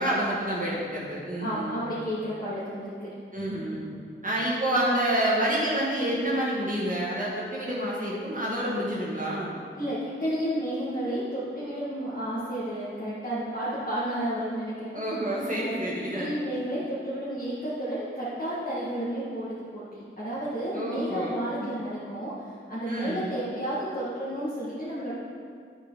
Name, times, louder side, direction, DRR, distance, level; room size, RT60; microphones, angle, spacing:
voice 1, 0.0-1.8 3.3-3.8 4.2-9.6 14.9-16.4 20.7-21.7 22.9-23.3, right 1 dB, 40° right, -6 dB, 1.7 m, -28 dB
voice 2, 1.4-3.1 9.8-14.9 15.5-15.9 16.1-19.5 19.7-25.1, equal, 45° left, -11 dB, 2.2 m, -32 dB
8.8 x 7.3 x 4.1 m, 2.2 s
cardioid pair, 40°, 21 cm